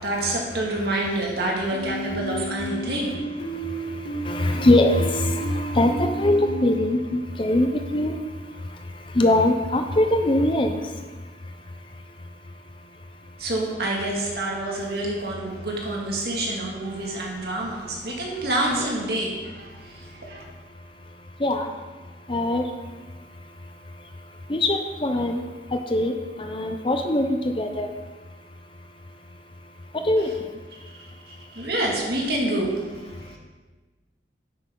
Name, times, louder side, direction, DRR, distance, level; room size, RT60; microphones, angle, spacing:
voice 1, 0.0-3.2 13.4-20.4 31.3-33.4, right 1 dB, 60° right, -2 dB, 2.2 m, -27 dB
sound 1, 1.7-6.8, right 2 dB, 90° left, 2.1 m, -32 dB
voice 2, 4.1-7.0 7.4-8.1 9.1-10.8 18.7-18.9 21.4-21.7 22.3-22.6 24.5-25.4 25.7-27.9 30.0-30.3, left 1 dB, 30° left, 6 dB, 0.6 m, -22 dB
10.0 x 8.1 x 3.8 m, 1.3 s
head